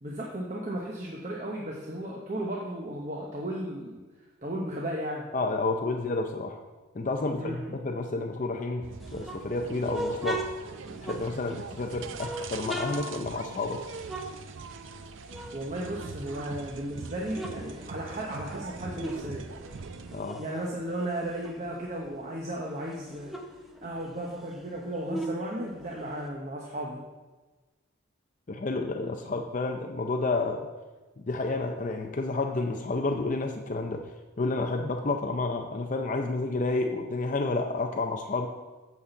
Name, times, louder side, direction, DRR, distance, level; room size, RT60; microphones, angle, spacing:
voice 1, 0.0-4.0 4.4-5.3 7.4-7.8 15.5-19.5 20.4-23.4 23.8-27.0, right 1 dB, 35° right, -3 dB, 0.9 m, -35 dB
voice 2, 5.3-6.6 6.9-10.4 11.0-13.8 20.1-20.4 28.5-30.7 31.2-38.5, left 3 dB, 40° left, 4 dB, 0.5 m, -30 dB
sound 1, 8.8-20.2, right 4 dB, 70° right, 0.5 m, -42 dB
sound 2, 9.0-11.7 12.1-15.0 15.3-16.6 17.0-19.3 19.6-22.1 22.5-22.6 22.8-26.3, right 1 dB, ahead, 0.6 m, -39 dB
8.4 x 4.1 x 6.9 m, 1.2 s
head